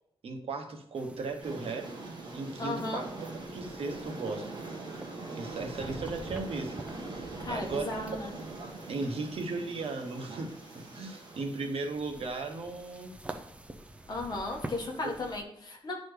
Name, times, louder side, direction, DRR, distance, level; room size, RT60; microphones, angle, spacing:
voice 1, 0.2-2.0 2.3-4.6 5.4-6.8 7.5-7.9 8.9-13.2 15.0-15.1, right 3 dB, 80° right, 3 dB, 1.0 m, -36 dB
sound 1, 1.0-15.4, right 1 dB, 10° right, 0.5 m, -48 dB
Train, 1.4-11.4, right 3 dB, 45° right, 1.8 m, -42 dB
voice 2, 2.6-3.0 7.4-8.3 14.1-15.9, left 2 dB, 45° left, 0 dB, 1.5 m, -35 dB
10.5 x 4.2 x 3.3 m, 0.77 s
wide cardioid pair, 165°, 10 cm